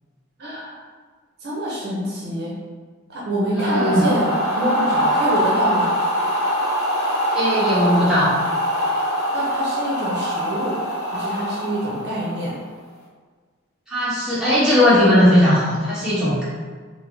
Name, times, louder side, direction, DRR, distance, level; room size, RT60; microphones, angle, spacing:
voice 1, 0.4-0.8 1.4-2.6 3.1-5.9 9.3-10.8 11.1-12.6, equal, 50° right, -5 dB, 0.6 m, -26 dB
sound 1, 3.5-12.6, equal, 90° left, 0.7 m, -23 dB
voice 2, 3.5-4.1 7.3-8.3 13.9-16.4, left 1 dB, 5° right, -11 dB, 1.1 m, -17 dB
4.6 x 2.0 x 2.7 m, 1.5 s
head